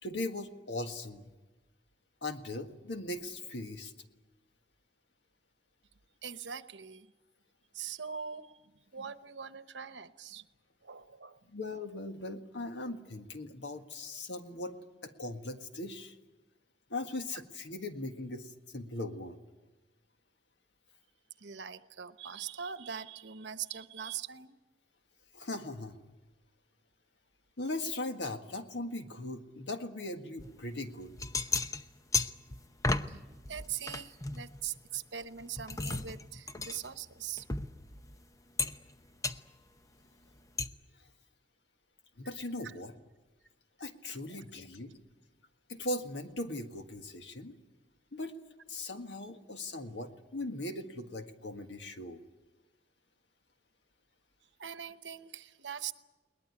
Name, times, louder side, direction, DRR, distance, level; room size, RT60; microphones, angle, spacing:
voice 1, 0.0-1.3 2.2-3.9 11.5-14.8 15.0-16.2 16.9-19.4 25.3-26.0 27.6-31.1 40.9-41.1 42.2-42.9 43.8-45.0 45.7-47.5 48.1-48.3 48.7-52.2, left 2 dB, 80° left, 6 dB, 1.8 m, -39 dB
voice 2, 6.2-7.1 7.7-8.6 8.9-10.5 10.8-11.4 21.4-24.6 33.1-33.2 33.5-37.5 42.6-42.7 44.3-44.4 54.6-55.9, right 8 dB, 85° right, 11 dB, 1.0 m, -42 dB
sound 1, 30.4-30.5 31.0-33.2 33.5-35.0 35.4-38.2 38.6-38.9 39.2-39.4 40.6-40.7, left 3 dB, 20° left, 0.7 m, -34 dB
21.5 x 19.5 x 9.8 m, 1.2 s
head